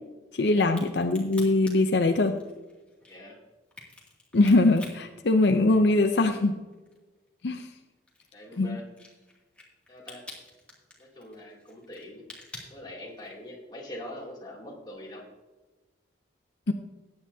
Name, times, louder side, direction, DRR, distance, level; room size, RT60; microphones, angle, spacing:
voice 1, 0.3-2.4 4.3-6.6 7.4-7.7 8.6-8.8 16.7-16.8, left 2 dB, 65° left, 6 dB, 0.6 m, -22 dB
Crack, 0.6-6.1 6.5-13.5, left 2 dB, 5° left, 2.3 m, -48 dB
voice 2, 3.1-3.4 8.3-8.8 9.9-10.2 11.0-12.2 12.7-15.2, left 1 dB, 20° left, -3 dB, 2.7 m, -43 dB
15.5 x 9.8 x 2.7 m, 1.2 s
head